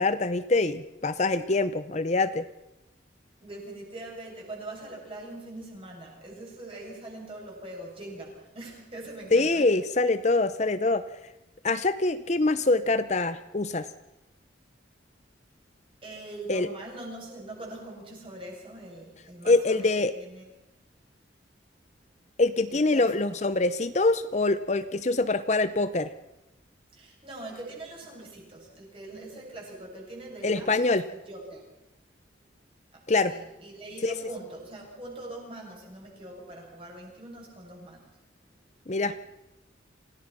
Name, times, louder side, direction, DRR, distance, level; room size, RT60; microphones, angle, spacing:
voice 1, 0.0-2.4 9.3-11.0 11.6-13.9 16.5-16.7 19.5-20.1 22.4-26.1 30.4-31.0 33.1-33.3 34.0-34.2 38.9-39.1, left 3 dB, 35° left, 12 dB, 0.7 m, -24 dB
voice 2, 3.4-9.8 16.0-20.5 22.7-23.1 26.9-31.6 32.9-38.1, right 2 dB, 30° right, -2 dB, 7.8 m, -42 dB
27.5 x 17.5 x 6.0 m, 0.93 s
head